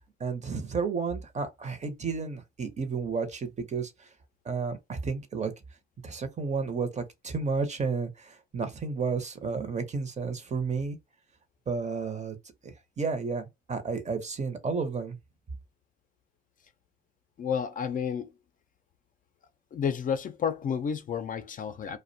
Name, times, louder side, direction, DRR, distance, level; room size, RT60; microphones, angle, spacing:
voice 1, 0.2-4.1 4.4-5.5 6.0-11.0 11.7-12.4 12.6-15.2, right 5 dB, 35° right, 0.7 m, -32 dB
voice 2, 17.4-18.3 19.7-22.0, left 7 dB, 45° left, 0.4 m, -31 dB
2.4 x 2.1 x 2.6 m
cardioid pair, 90°, 20 cm